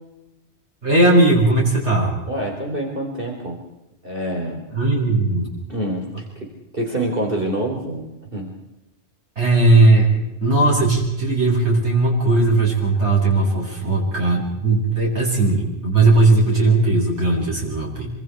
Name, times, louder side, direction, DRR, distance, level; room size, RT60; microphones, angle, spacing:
voice 1, 0.8-2.1 4.7-5.5 9.4-18.1, right 2 dB, 70° right, -3 dB, 8.2 m, -17 dB
voice 2, 2.3-3.6 4.0-4.6 5.7-8.0 8.3-8.5, right 1 dB, 50° right, 0 dB, 3.9 m, -26 dB
26.0 x 25.5 x 4.6 m, 0.94 s
omnidirectional pair, 1.2 m